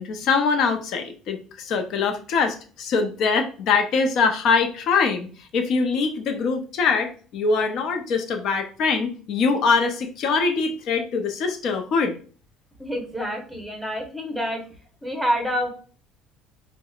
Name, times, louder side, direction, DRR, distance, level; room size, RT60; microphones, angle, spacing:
voice 1, 0.0-5.3 5.5-12.2, left 4 dB, 60° left, 5 dB, 0.6 m, -23 dB
voice 2, 12.8-14.6 15.0-15.7, equal, ahead, 2 dB, 0.9 m, -27 dB
4.6 x 2.1 x 2.3 m, 0.40 s
cardioid pair, 115°, 0 cm